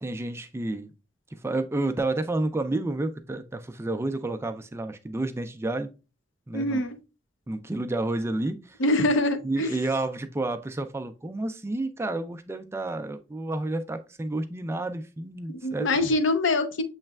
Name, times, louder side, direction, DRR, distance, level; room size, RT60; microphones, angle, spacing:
voice 1, 0.0-0.9 1.3-5.9 6.5-6.9 7.5-8.8 9.4-16.1, right 2 dB, 15° right, 0.3 m, -30 dB
voice 2, 6.5-7.0 8.8-9.8 15.6-16.8, left 2 dB, 75° left, 0.7 m, -24 dB
6.7 x 3.2 x 2.3 m
head